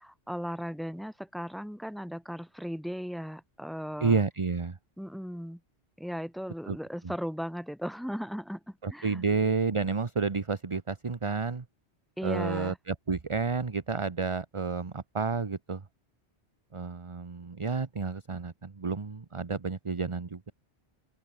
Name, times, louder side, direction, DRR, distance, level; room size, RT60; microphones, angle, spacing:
voice 1, 0.0-4.2 5.0-5.6 6.0-9.2 12.2-12.8, equal, ahead, 3.6 m, -37 dB
voice 2, 4.0-4.8 6.7-6.8 7.0-7.1 8.8-11.6 12.2-15.8 16.7-20.4, right 4 dB, 30° right, 1.0 m, -30 dB
open air
omnidirectional pair, 1.1 m